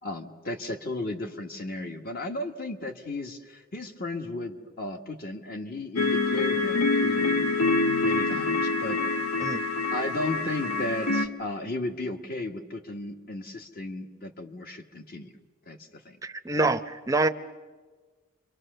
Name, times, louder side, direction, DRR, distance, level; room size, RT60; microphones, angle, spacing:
voice 1, 0.0-7.5 8.0-9.0 9.9-15.3 15.7-16.2, left 2 dB, 45° left, 5 dB, 1.6 m, -35 dB
sound 1, 6.0-11.3, left 3 dB, 80° left, 1.3 m, -26 dB
voice 2, 16.2-17.3, right 2 dB, 15° right, 10 dB, 0.7 m, -26 dB
29.0 x 24.5 x 6.8 m, 1.4 s
head